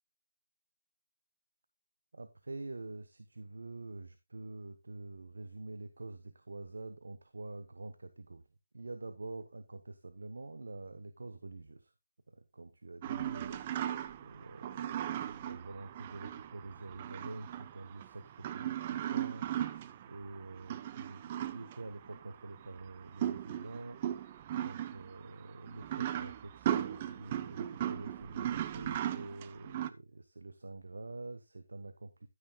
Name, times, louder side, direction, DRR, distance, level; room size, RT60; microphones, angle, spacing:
voice 1, 2.1-8.5 8.7-11.9 12.3-32.3, right 2 dB, 70° right, 10 dB, 1.0 m, -47 dB
sound 1, 13.0-29.9, right 11 dB, 25° right, 0.6 m, -38 dB
11.5 x 9.6 x 2.3 m, 0.21 s
figure-of-eight pair, 155°, 0 cm